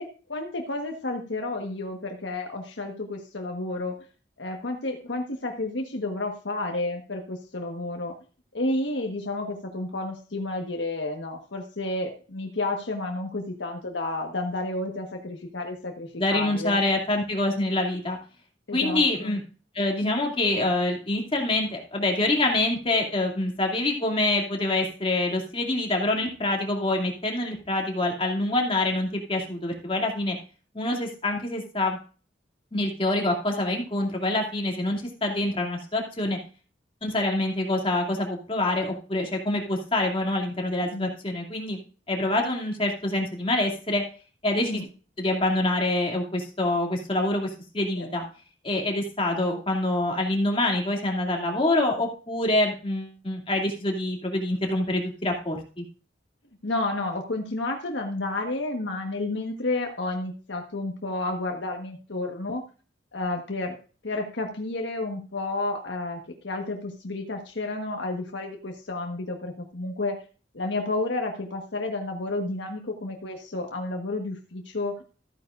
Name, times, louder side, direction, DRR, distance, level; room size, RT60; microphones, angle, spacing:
voice 1, 0.0-3.9 4.4-8.1 8.5-16.8 18.7-19.4 40.9-41.1 44.7-44.9 48.0-48.1 56.6-62.6 63.1-63.7 64.0-70.2 70.5-75.0, left 2 dB, 80° left, 3 dB, 1.3 m, -31 dB
voice 2, 16.2-18.2 18.7-19.4 19.7-30.4 30.7-32.0 32.7-36.4 37.0-41.8 42.1-44.0 44.4-44.8 45.2-47.5 47.7-48.2 48.6-55.8, left 2 dB, 30° left, 1 dB, 2.5 m, -26 dB
14.5 x 9.3 x 2.5 m, 0.38 s
head